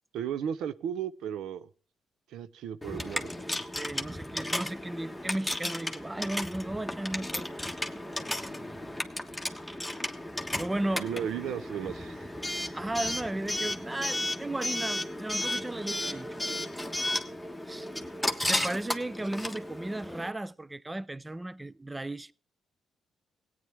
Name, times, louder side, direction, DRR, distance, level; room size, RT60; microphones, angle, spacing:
voice 1, 0.1-1.7 2.3-3.4 11.0-12.3, right 9 dB, 80° right, 0.6 m, -35 dB
Coin (dropping) / Alarm, 2.8-20.3, left 1 dB, ahead, 1.3 m, -34 dB
voice 2, 3.7-7.7 8.3-8.5 10.6-11.1 12.7-16.6 17.7-17.9 18.4-22.3, right 1 dB, 15° right, 0.4 m, -35 dB
17.0 x 9.2 x 3.4 m
supercardioid pair, 65°, 0 cm